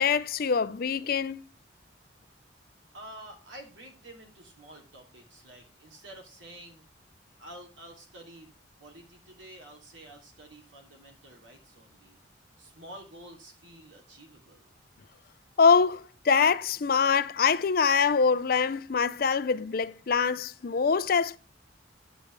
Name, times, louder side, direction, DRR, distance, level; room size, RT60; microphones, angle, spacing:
voice 1, 0.0-1.4 15.6-21.4, left 5 dB, 50° left, 0.5 m, -24 dB
voice 2, 2.9-6.9 7.4-8.5 8.8-12.2 12.6-14.8, right 1 dB, 80° right, 2.8 m, -49 dB
9.1 x 8.4 x 3.3 m
head